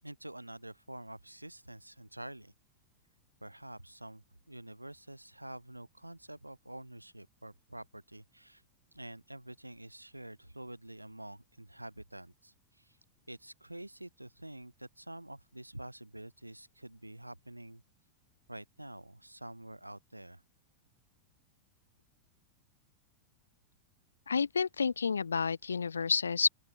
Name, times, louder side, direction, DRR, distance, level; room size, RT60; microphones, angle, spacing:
voice 1, 0.0-2.5 3.4-8.6 8.9-13.0 13.3-17.8 18.5-20.4, right 1 dB, 85° right, 7.2 m, -48 dB
voice 2, 24.3-26.5, left 5 dB, 75° left, 1.0 m, -30 dB
open air
figure-of-eight pair, 90°, 0 cm